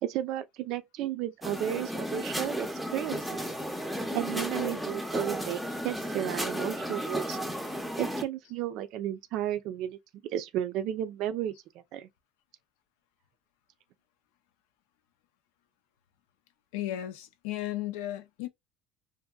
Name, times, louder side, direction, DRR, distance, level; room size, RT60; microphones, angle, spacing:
voice 1, 0.0-3.3 4.1-7.4 8.0-10.0 10.3-12.1, right 11 dB, 65° right, 0.4 m, -33 dB
sound 1, 1.4-8.2, equal, ahead, 0.6 m, -34 dB
voice 2, 16.7-18.5, left 14 dB, 90° left, 0.5 m, -35 dB
2.7 x 2.5 x 2.3 m
cardioid pair, 125°, 0 cm